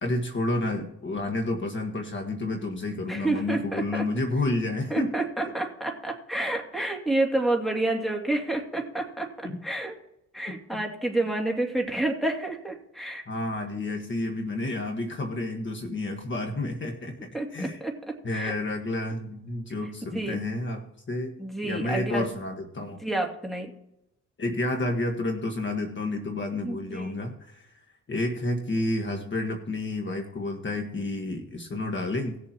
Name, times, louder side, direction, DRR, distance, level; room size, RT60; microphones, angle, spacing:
voice 1, 0.0-5.1 9.4-9.6 10.5-10.6 13.3-17.8 18.2-21.3 21.6-23.0 24.4-27.7 28.1-32.4, left 2 dB, 40° left, 4 dB, 1.6 m, -30 dB
voice 2, 3.1-4.1 4.9-9.3 9.6-10.0 10.3-13.2 17.3-18.5 20.1-20.4 21.4-22.3 23.0-23.7 26.6-27.2, right 2 dB, ahead, 1 dB, 2.6 m, -29 dB
19.0 x 7.2 x 3.0 m, 0.81 s
cardioid pair, 90°, 30 cm